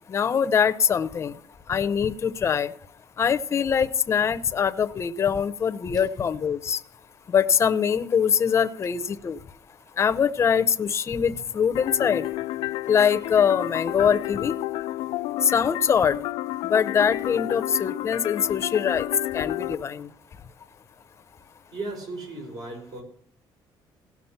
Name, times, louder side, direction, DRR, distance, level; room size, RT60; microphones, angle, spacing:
voice 1, 0.1-1.3 1.7-2.7 3.2-6.8 7.3-9.4 10.0-12.3 12.9-14.5 15.4-16.2 16.7-19.1 19.3-20.1, left 7 dB, 35° left, 0.7 m, -23 dB
sound 1, 11.7-19.7, left 16 dB, 80° left, 0.4 m, -31 dB
voice 2, 21.7-23.0, right 2 dB, 55° right, 4.9 m, -36 dB
17.0 x 6.1 x 5.8 m
cardioid pair, 125°, 8 cm